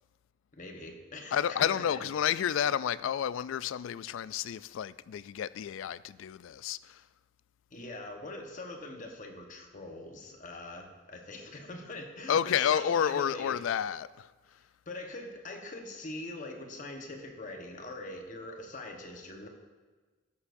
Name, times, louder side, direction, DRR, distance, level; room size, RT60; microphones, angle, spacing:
voice 1, 0.5-2.1 7.7-13.6 14.5-19.5, left 2 dB, 40° left, 1.1 m, -43 dB
voice 2, 1.3-7.0 12.3-14.3, left 9 dB, 75° left, 0.3 m, -30 dB
19.0 x 7.1 x 2.6 m
head